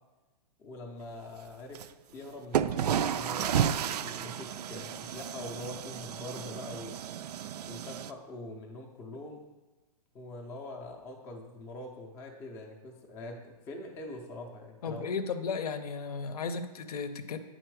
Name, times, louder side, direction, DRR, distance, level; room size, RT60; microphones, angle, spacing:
voice 1, 0.6-1.8 2.1-3.7 4.0-7.0 7.6-9.4 10.1-15.1, left 2 dB, 10° left, 1 dB, 0.4 m, -43 dB
sound 1, 1.7-1.9 2.5-8.1, right 9 dB, 80° right, 0.4 m, -32 dB
voice 2, 14.8-17.4, left 5 dB, 70° left, 11 dB, 0.7 m, -34 dB
9.0 x 4.2 x 4.6 m, 1.2 s
hypercardioid pair, 165°, 20 cm